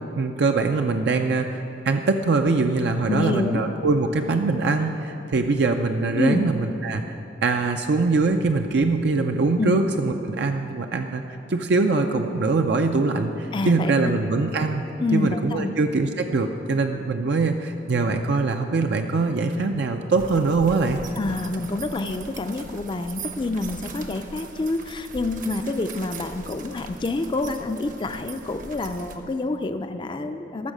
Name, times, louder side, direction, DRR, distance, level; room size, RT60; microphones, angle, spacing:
voice 1, 0.2-7.1 7.4-11.2 11.5-14.8 15.1-21.0, right 3 dB, 65° right, 5 dB, 0.5 m, -23 dB
voice 2, 3.1-3.6 6.2-6.4 9.6-9.8 13.5-13.9 15.0-15.7 21.2-30.7, left 2 dB, 25° left, 8 dB, 0.4 m, -27 dB
sound 1, 20.2-29.2, right 4 dB, 50° right, 0.9 m, -40 dB
13.5 x 6.3 x 6.5 m, 2.8 s
head